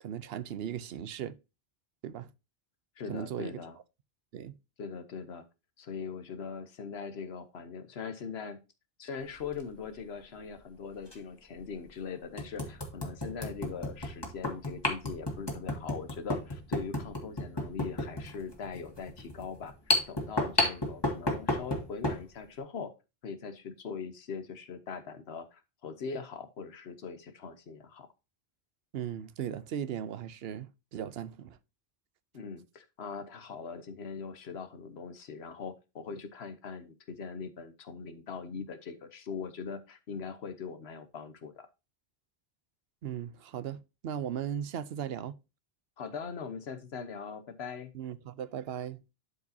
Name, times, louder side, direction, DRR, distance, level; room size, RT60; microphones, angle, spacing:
voice 1, 0.0-1.4 2.0-2.3 3.1-3.6 4.3-4.5 28.9-31.6 43.0-45.4 47.9-49.0, right 9 dB, 75° right, 0.9 m, -37 dB
voice 2, 3.0-3.8 4.8-5.5 5.8-8.6 9.0-19.7 20.1-22.9 23.2-28.1 32.3-41.7 46.0-48.0, left 5 dB, 85° left, 1.2 m, -41 dB
sound 1, 9.4-9.6 11.1-11.2 11.7-11.8 12.4-22.2, left 1 dB, 25° left, 1.9 m, -32 dB
11.5 x 4.8 x 2.7 m
omnidirectional pair, 1.0 m